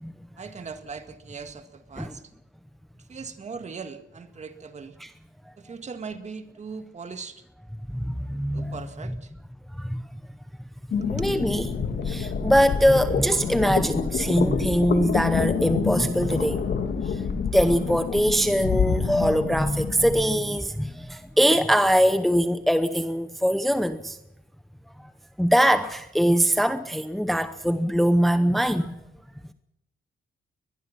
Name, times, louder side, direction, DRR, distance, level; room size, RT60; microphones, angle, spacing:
voice 1, 0.4-2.2 2.9-5.0 5.6-7.4 8.5-9.3 11.0-11.3, right 5 dB, 35° right, 2.0 m, -39 dB
voice 2, 7.9-8.7 9.8-10.0 11.1-11.7 12.0-16.6 17.0-17.2 17.5-24.2 25.4-29.0, equal, ahead, 0.8 m, -22 dB
sound 1, 10.9-20.3, left 6 dB, 60° left, 2.3 m, -27 dB
22.5 x 21.0 x 5.9 m
cardioid pair, 150°, 20 cm